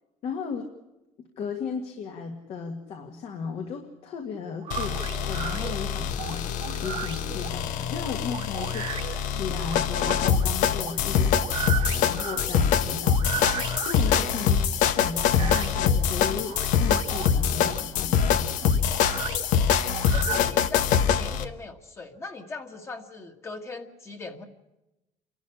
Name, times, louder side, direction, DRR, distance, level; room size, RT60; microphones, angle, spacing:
voice 1, 0.2-0.7 1.2-14.6 14.9-18.9, left 5 dB, 50° left, 4 dB, 1.9 m, -36 dB
sound 1, 4.6-20.4, right 10 dB, 50° right, 1.6 m, -37 dB
sound 2, 4.7-21.5, left 8 dB, 80° left, 1.2 m, -24 dB
voice 2, 20.1-24.5, left 3 dB, 20° left, 5 dB, 1.6 m, -40 dB
28.0 x 12.5 x 9.9 m, 0.96 s
cardioid pair, 165°, 13 cm